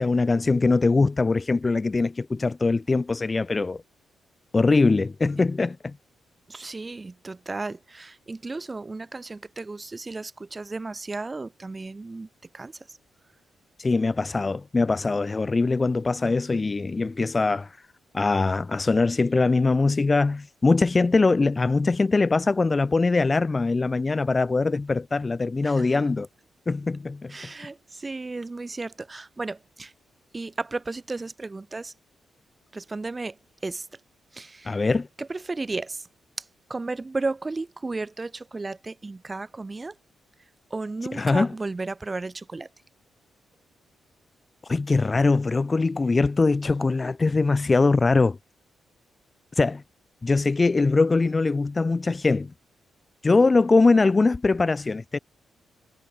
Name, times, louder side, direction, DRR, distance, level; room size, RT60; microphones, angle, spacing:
voice 1, 0.0-3.8 4.5-5.9 13.8-17.7 18.1-26.3 26.7-27.3 34.7-35.1 41.2-41.5 44.7-48.4 49.6-49.8 50.2-52.5 53.2-55.2, left 3 dB, 25° left, 0.3 m, -22 dB
voice 2, 6.5-12.3 12.5-13.0 25.6-26.0 27.3-29.9 30.3-31.9 32.7-34.0 34.3-34.8 35.2-36.1 36.4-40.0 40.7-42.7, right 3 dB, 20° right, 1.2 m, -34 dB
cardioid pair, 120°, 0 cm